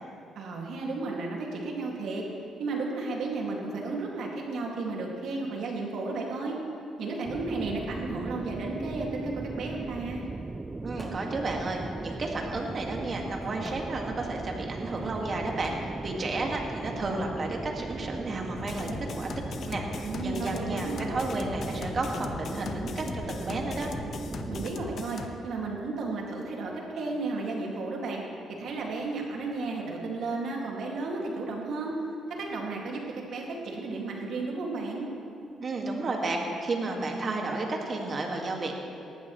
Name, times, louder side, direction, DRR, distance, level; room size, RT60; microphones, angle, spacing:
voice 1, 0.3-2.2 2.6-6.6 7.0-10.2 20.0-21.2 24.5-28.2 28.6-32.0 32.4-35.1, right 3 dB, 70° right, -1 dB, 2.3 m, -33 dB
sound 1, 7.2-24.7, right 3 dB, 25° right, 0.3 m, -38 dB
voice 2, 10.8-19.3 19.7-23.9 35.6-38.7, right 2 dB, 45° right, 1 dB, 2.0 m, -32 dB
sound 2, 11.0-11.5 11.8-16.2 17.1-18.7, equal, 5° right, 1.8 m, -49 dB
sound 3, 18.6-25.3, left 5 dB, 60° left, 0.8 m, -39 dB
18.0 x 12.0 x 3.2 m, 2.7 s
cardioid pair, 90°, 0 cm